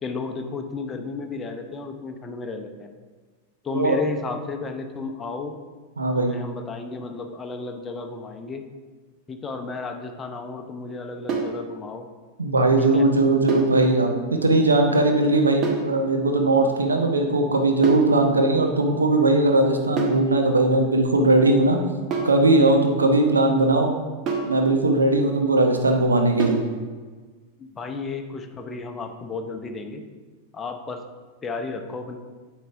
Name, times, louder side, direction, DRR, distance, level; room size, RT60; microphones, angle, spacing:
voice 1, 0.0-2.9 3.6-5.6 6.1-8.6 9.3-12.1 12.8-13.1 13.8-13.9 27.6-30.0 30.5-31.0 31.4-32.2, left 4 dB, 20° left, 4 dB, 0.7 m, -33 dB
voice 2, 6.0-6.3 12.4-21.8 22.2-23.9 24.5-26.7, right 2 dB, 75° right, 3 dB, 0.9 m, -19 dB
sound 1, 11.3-11.6 13.5-13.8 15.6-15.9 17.8-18.1 20.0-20.3 22.1-22.4 24.3-24.6 26.4-26.7, right 5 dB, 35° right, 1.3 m, -27 dB
9.1 x 6.4 x 3.5 m, 1.4 s
figure-of-eight pair, 90°, 0 cm